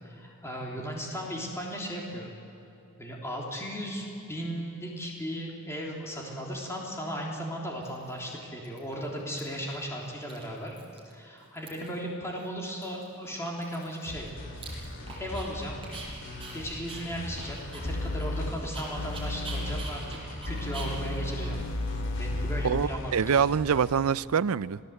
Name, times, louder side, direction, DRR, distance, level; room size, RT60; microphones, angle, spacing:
voice 1, 0.0-2.3 3.0-10.7 11.0-14.3 14.6-14.8 15.2-15.8 16.5-20.2 20.4-21.6 22.2-23.5, equal, 10° left, -2 dB, 3.3 m, -36 dB
Dog, 7.1-7.2 7.8-8.3 8.6-9.4 9.7-9.8 10.1-11.1 11.4-12.0 12.4-12.5 12.8-15.5 15.8-22.4, right 3 dB, 25° right, 5.9 m, -45 dB
sound 1, 14.1-24.1, left 1 dB, 55° left, 3.2 m, -41 dB
sound 2, 17.8-18.5 19.0-19.8 20.5-22.8, left 2 dB, 85° left, 1.3 m, -32 dB
voice 2, 22.6-24.8, right 7 dB, 70° right, 17 dB, 0.5 m, -25 dB
27.0 x 18.5 x 8.2 m, 2.8 s
head